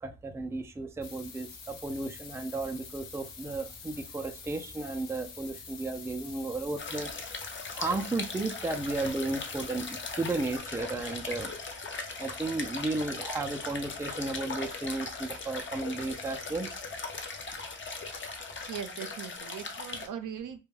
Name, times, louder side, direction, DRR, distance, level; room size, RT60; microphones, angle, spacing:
voice 1, 0.0-7.1 7.7-11.5 12.2-16.7, right 2 dB, 10° right, 5 dB, 0.4 m, -34 dB
sound 1, 1.0-10.6, left 6 dB, 75° left, 0.7 m, -47 dB
sound 2, 6.8-20.1, left 4 dB, 35° left, 0.6 m, -39 dB
voice 2, 18.7-20.6, right 8 dB, 65° right, 8 dB, 0.5 m, -39 dB
2.2 x 2.2 x 3.1 m, 0.30 s
cardioid pair, 60°, 33 cm